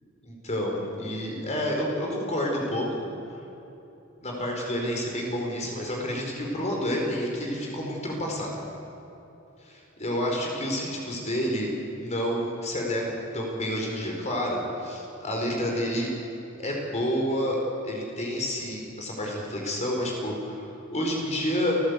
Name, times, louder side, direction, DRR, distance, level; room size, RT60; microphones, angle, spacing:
voice 1, 0.2-3.1 4.2-8.6 9.6-11.7 12.0-16.1 16.6-17.6 17.8-21.8, equal, 35° left, -1 dB, 4.7 m, -29 dB
29.5 x 15.5 x 8.3 m, 3.0 s
head